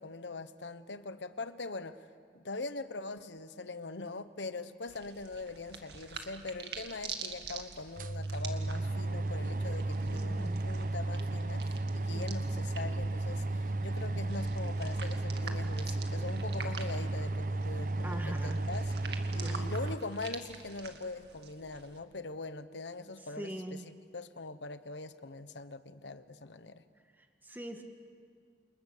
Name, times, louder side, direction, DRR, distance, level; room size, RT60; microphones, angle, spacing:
voice 1, 0.0-2.0 2.3-18.9 19.3-23.8 24.1-26.8, left 3 dB, 90° left, 12 dB, 1.2 m, -42 dB
sound 1, 4.9-22.0, right 6 dB, 70° right, 2.1 m, -48 dB
sound 2, 6.8-6.9 7.4-7.5 7.8-20.0, right 2 dB, 50° right, 0.8 m, -34 dB
voice 2, 10.1-10.7 12.1-12.3 18.0-18.6 19.4-19.7 23.4-23.9 27.2-27.8, equal, 10° right, 4 dB, 2.0 m, -42 dB
28.5 x 28.5 x 6.8 m, 2.1 s
head